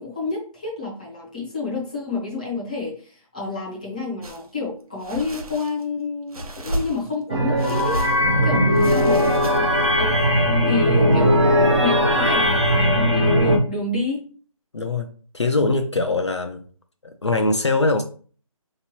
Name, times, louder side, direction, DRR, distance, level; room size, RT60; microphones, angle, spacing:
voice 1, 0.0-8.0 8.4-9.4 10.0-10.3 10.6-14.2, left 3 dB, 15° left, -6 dB, 0.7 m, -29 dB
sound 1, 4.2-4.5 5.0-5.9 6.3-7.2 7.6-8.3 8.7-9.9, right 1 dB, 80° right, 0.9 m, -33 dB
sound 2, 7.3-13.6, equal, 50° right, 0.8 m, -18 dB
voice 2, 14.7-15.1 15.3-16.6 17.2-18.0, left 3 dB, 50° left, 5 dB, 0.4 m, -22 dB
4.5 x 2.9 x 2.9 m, 0.42 s
hypercardioid pair, 180°, 18 cm